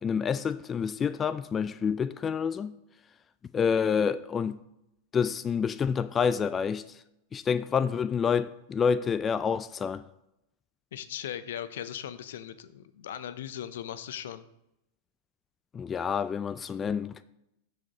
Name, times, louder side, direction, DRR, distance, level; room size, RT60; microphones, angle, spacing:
voice 1, 0.0-2.7 3.5-4.6 5.1-6.8 7.3-10.0 15.7-17.2, left 6 dB, 25° left, 0.3 m, -28 dB
voice 2, 10.9-14.5, left 10 dB, 75° left, 0.6 m, -38 dB
13.5 x 5.1 x 2.9 m
hypercardioid pair, 110°, 0 cm